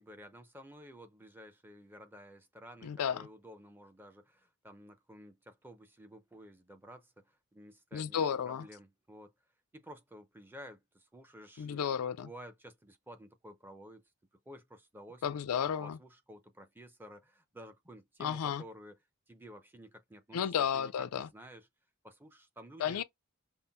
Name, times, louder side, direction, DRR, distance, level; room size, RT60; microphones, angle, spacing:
voice 1, 0.0-9.3 9.7-11.8 12.2-14.0 14.5-15.4 15.8-19.0 19.3-21.7 22.0-23.0, equal, 10° right, 0.5 m, -52 dB
voice 2, 2.8-3.3 7.9-8.6 11.6-12.3 15.2-16.0 18.2-18.6 20.3-21.3 22.8-23.0, left 8 dB, 80° left, 0.4 m, -33 dB
5.4 x 2.0 x 2.2 m
head